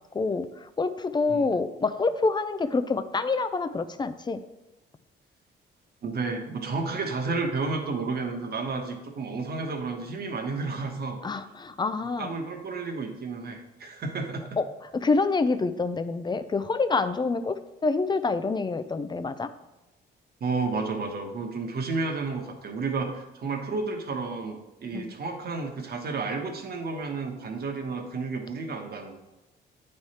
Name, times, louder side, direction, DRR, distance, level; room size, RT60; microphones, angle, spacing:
voice 1, 0.1-4.4 11.2-12.3 14.6-14.7 14.9-19.5 24.9-25.1, left 3 dB, 20° left, 11 dB, 0.4 m, -27 dB
voice 2, 6.0-11.2 12.2-14.6 20.4-29.2, right 4 dB, 50° right, 3 dB, 1.2 m, -31 dB
9.6 x 3.2 x 4.2 m, 1.0 s
cardioid pair, 90°, 20 cm